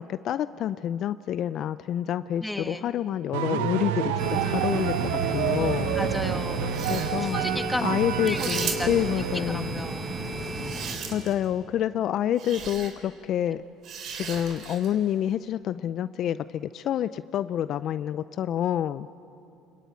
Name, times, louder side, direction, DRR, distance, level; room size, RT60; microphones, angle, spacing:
voice 1, 0.0-5.9 6.9-7.4 7.8-9.8 11.1-13.6 14.1-19.1, left 10 dB, 55° left, 14 dB, 0.5 m, -28 dB
voice 2, 2.4-2.9 6.0-6.7 7.3-7.8 8.2-8.9 9.5-10.1, left 1 dB, 5° left, 6 dB, 1.9 m, -33 dB
sound 1, 3.3-9.8, right 10 dB, 85° right, 1.0 m, -29 dB
sound 2, 4.2-10.9, right 1 dB, 30° right, 7.2 m, -33 dB
sound 3, 6.6-7.3 8.2-9.1 10.3-11.4 12.4-12.9 13.8-14.9, right 6 dB, 60° right, 3.7 m, -36 dB
24.5 x 22.5 x 9.4 m, 2.7 s
supercardioid pair, 85°, 0 cm